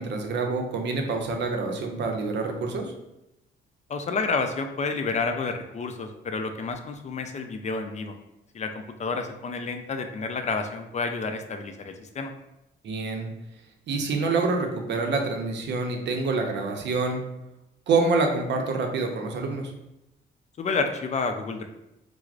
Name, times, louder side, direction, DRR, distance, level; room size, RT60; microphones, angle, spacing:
voice 1, 0.0-2.9 12.8-13.3 13.9-17.2 17.9-19.7, right 3 dB, 65° right, 3 dB, 0.6 m, -26 dB
voice 2, 3.9-8.2 8.5-8.7 9.0-12.3 20.6-21.7, left 4 dB, 35° left, 5 dB, 0.4 m, -29 dB
4.5 x 2.0 x 2.4 m, 0.89 s
cardioid pair, 90°, 20 cm